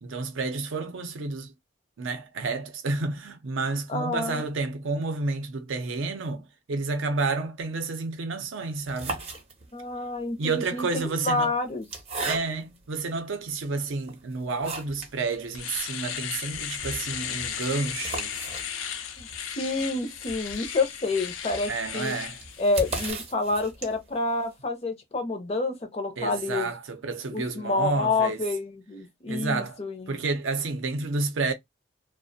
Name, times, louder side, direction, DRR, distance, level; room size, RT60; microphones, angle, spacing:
voice 1, 0.0-1.5 2.0-9.2 10.4-11.5 12.2-18.3 21.7-22.4 26.2-28.4 29.3-29.8 30.1-31.5, right 3 dB, 80° right, 0.5 m, -30 dB
voice 2, 3.9-4.4 9.7-11.9 19.2-19.3 19.6-22.2 22.6-26.7 27.3-30.2, left 3 dB, 30° left, 0.5 m, -28 dB
sound 1, 8.7-9.9 10.8-12.8 13.5-13.6 14.0-15.2 15.5-15.6 15.9-16.0 16.3-24.2, right 3 dB, 30° right, 0.5 m, -38 dB
Domestic sounds home sounds, 14.9-15.0 15.4-23.1, left 8 dB, 85° left, 0.4 m, -35 dB
2.4 x 2.1 x 2.6 m
head